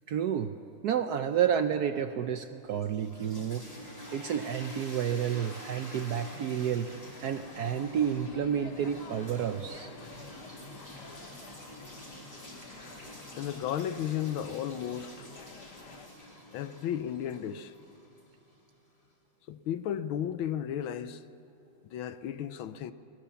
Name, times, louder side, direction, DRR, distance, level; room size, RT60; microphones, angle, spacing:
voice 1, 0.1-0.5 0.8-3.6 4.1-6.9 7.2-9.9, right 8 dB, 70° right, 1.0 m, -30 dB
sound 1, 2.6-18.6, equal, 20° left, 4.8 m, -47 dB
sound 2, 7.4-16.1, left 4 dB, 55° left, 1.9 m, -51 dB
voice 2, 13.3-15.3 16.5-17.7 19.5-21.2 21.8-22.9, left 10 dB, 80° left, 1.6 m, -34 dB
21.0 x 20.5 x 7.1 m
omnidirectional pair, 2.2 m